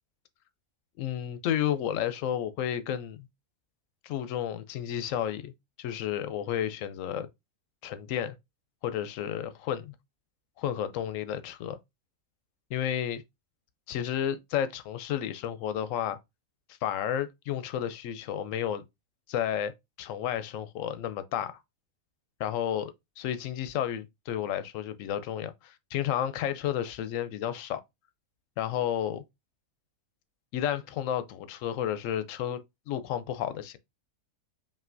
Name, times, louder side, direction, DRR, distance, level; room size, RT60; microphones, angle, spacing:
voice 1, 1.0-3.3 4.0-5.5 5.8-7.3 7.8-8.3 8.8-9.9 10.6-11.8 12.7-13.2 13.9-16.2 16.8-18.8 19.3-19.7 20.0-21.6 22.4-27.8 28.6-29.2 30.5-32.6 32.9-33.8, left 10 dB, 70° left, 0.9 m, -31 dB
5.4 x 2.7 x 2.5 m
omnidirectional pair, 1.5 m